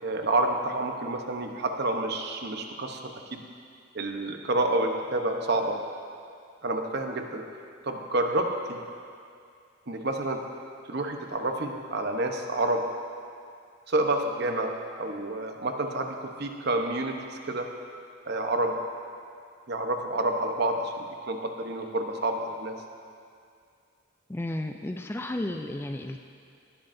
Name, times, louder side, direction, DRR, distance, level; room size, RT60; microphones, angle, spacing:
voice 1, 0.0-3.0 3.3-3.4 3.9-5.8 6.6-7.4 7.8-8.8 9.9-10.4 10.8-12.8 13.9-17.7 18.2-18.8 19.7-22.7, right 2 dB, 55° right, 4 dB, 0.9 m, -29 dB
voice 2, 24.3-26.2, left 1 dB, 10° left, 5 dB, 0.3 m, -33 dB
18.0 x 11.5 x 2.6 m, 2.3 s
head